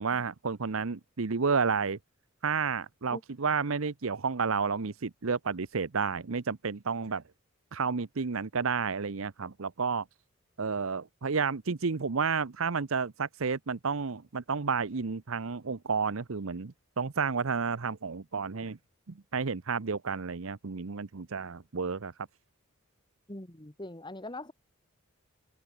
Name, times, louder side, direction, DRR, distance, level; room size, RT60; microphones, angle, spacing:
voice 1, 0.0-2.0 2.4-7.2 7.7-10.0 10.6-18.8 19.3-22.1, right 5 dB, 70° right, 0.8 m, -31 dB
voice 2, 23.3-24.5, left 1 dB, 20° left, 2.0 m, -41 dB
head